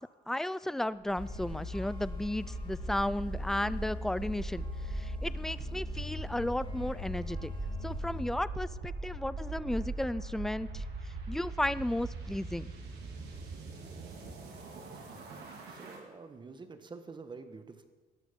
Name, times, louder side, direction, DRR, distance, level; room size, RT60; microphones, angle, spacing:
voice 1, 0.3-7.5 7.8-10.8 11.3-12.7, left 1 dB, ahead, 17 dB, 0.5 m, -34 dB
sound 1, 1.0-16.0, right 2 dB, 80° right, 4.0 m, -41 dB
sound 2, 1.2-8.3, left 3 dB, 30° left, 3.8 m, -42 dB
voice 2, 15.7-17.9, right 4 dB, 25° right, 9 dB, 1.6 m, -47 dB
17.0 x 12.5 x 5.4 m, 1.4 s
cardioid pair, 110°, 17 cm